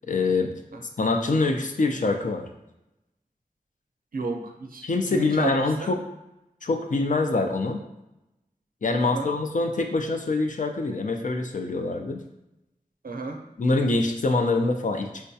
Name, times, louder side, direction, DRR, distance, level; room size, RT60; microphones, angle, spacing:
voice 1, 0.0-0.5 1.0-2.4 4.8-6.0 6.6-7.8 8.8-12.2 13.6-15.2, left 3 dB, 60° left, 5 dB, 0.4 m, -25 dB
voice 2, 4.1-5.9 9.0-9.3 13.0-13.4, right 3 dB, 75° right, 3 dB, 0.5 m, -32 dB
4.6 x 2.2 x 2.6 m, 0.90 s
wide cardioid pair, 55°, 15 cm